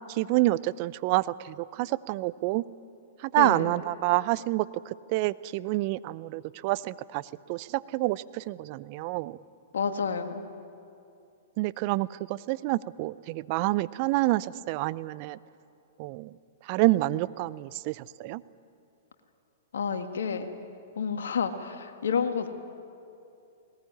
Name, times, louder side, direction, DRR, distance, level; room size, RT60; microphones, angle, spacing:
voice 1, 0.1-2.6 3.2-7.2 7.5-9.4 11.6-15.4 16.0-16.3 16.7-18.4, right 19 dB, 45° right, 18 dB, 0.6 m, -28 dB
voice 2, 3.3-3.7 9.7-10.4 19.7-20.5 21.0-22.5, left 6 dB, 75° left, 6 dB, 1.9 m, -29 dB
19.5 x 19.0 x 9.9 m, 2.6 s
hypercardioid pair, 110°, 0 cm